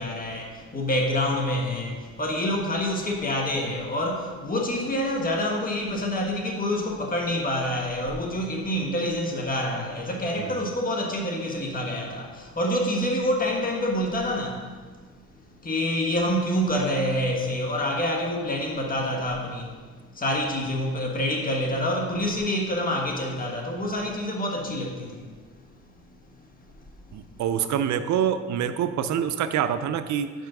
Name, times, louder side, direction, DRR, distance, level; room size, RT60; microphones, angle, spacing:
voice 1, 0.0-14.7 15.6-19.8 20.1-25.3, left 1 dB, 30° left, 0 dB, 1.5 m, -27 dB
voice 2, 27.1-30.3, right 9 dB, 70° right, 11 dB, 0.5 m, -26 dB
5.5 x 5.4 x 5.9 m, 1.5 s
cardioid pair, 90°, 30 cm